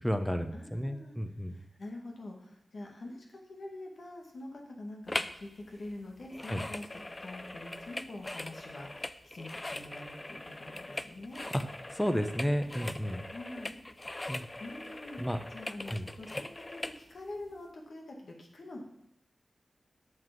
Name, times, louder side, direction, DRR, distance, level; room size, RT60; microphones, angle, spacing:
voice 1, 0.0-1.5 6.5-6.6 11.9-13.2 14.3-14.4 15.2-15.4 15.9-16.1, equal, 5° left, 8 dB, 1.1 m, -32 dB
voice 2, 0.5-1.2 1.5-11.4 13.2-13.8 14.6-15.2 15.5-18.8, left 2 dB, 70° left, 1 dB, 2.1 m, -45 dB
sound 1, 5.1-5.4 5.7-17.0 17.5-17.6, left 2 dB, 30° left, 0.6 m, -41 dB
8.1 x 6.0 x 7.7 m, 0.80 s
cardioid pair, 55°, 0 cm